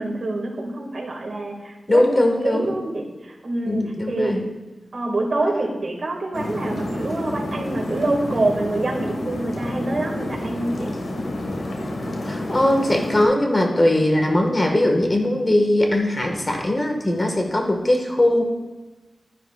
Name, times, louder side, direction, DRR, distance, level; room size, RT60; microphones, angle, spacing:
voice 1, 0.0-2.0 2.4-4.4 4.9-10.9, right 2 dB, 60° right, 0 dB, 2.0 m, -26 dB
voice 2, 1.9-2.7 3.6-4.4 12.3-18.4, left 1 dB, 30° left, 2 dB, 1.6 m, -20 dB
sound 1, 6.3-13.2, left 1 dB, 80° left, 1.6 m, -29 dB
12.0 x 10.5 x 2.4 m, 1.2 s
wide cardioid pair, 95°, 0 cm